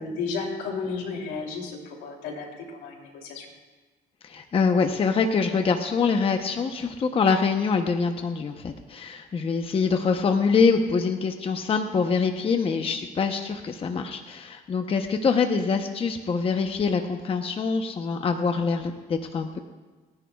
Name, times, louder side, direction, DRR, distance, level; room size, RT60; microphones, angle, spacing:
voice 1, 0.0-3.5, left 4 dB, 85° left, 1 dB, 2.9 m, -33 dB
voice 2, 4.2-19.6, left 5 dB, 35° left, 5 dB, 0.8 m, -24 dB
30.0 x 10.5 x 2.4 m, 1.3 s
cardioid pair, 110°, 17 cm